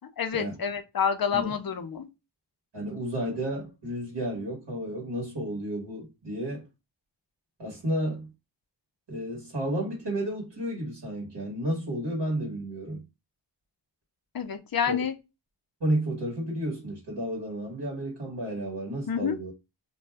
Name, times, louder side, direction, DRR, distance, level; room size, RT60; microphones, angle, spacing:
voice 1, 0.0-2.1 14.3-15.1 19.1-19.4, left 7 dB, 55° left, 0.6 m, -28 dB
voice 2, 2.7-6.7 7.6-8.3 9.1-13.0 14.9-15.0 15.8-19.5, right 1 dB, 65° right, 1.4 m, -32 dB
2.6 x 2.2 x 3.3 m
wide cardioid pair, 85°, 44 cm